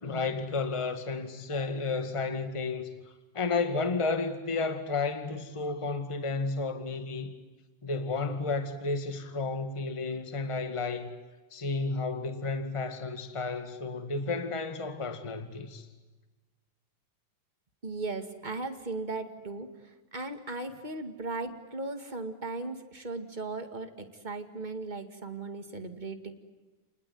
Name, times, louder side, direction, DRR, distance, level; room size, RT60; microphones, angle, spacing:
voice 1, 0.0-2.9 3.3-7.3 7.8-11.1 11.5-15.9, left 3 dB, 10° left, 1.6 m, -32 dB
voice 2, 17.8-19.7 20.1-26.3, right 3 dB, 20° right, 1.7 m, -37 dB
30.0 x 20.0 x 9.4 m
omnidirectional pair, 3.4 m